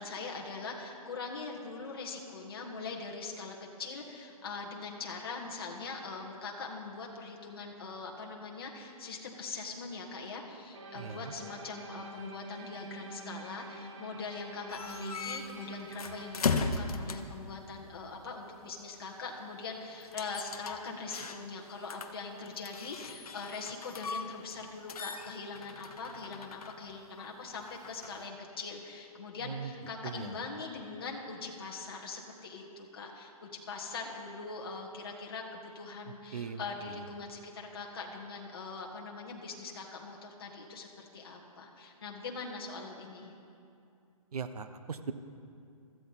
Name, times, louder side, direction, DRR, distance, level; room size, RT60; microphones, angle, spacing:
voice 1, 0.0-43.3, left 4 dB, 40° left, -1 dB, 1.7 m, -42 dB
sound 1, 10.7-16.7, right 2 dB, 50° right, 2.4 m, -46 dB
voice 2, 11.0-11.3 29.5-29.7 30.0-30.3 36.3-36.6 44.3-45.1, right 6 dB, 80° right, 10 dB, 0.9 m, -39 dB
sound 2, 14.7-17.4 20.0-21.6 21.9-24.6 24.9-28.3, left 4 dB, 75° left, 1.1 m, -37 dB
16.5 x 13.5 x 4.1 m, 2.5 s
hypercardioid pair, 180°, 19 cm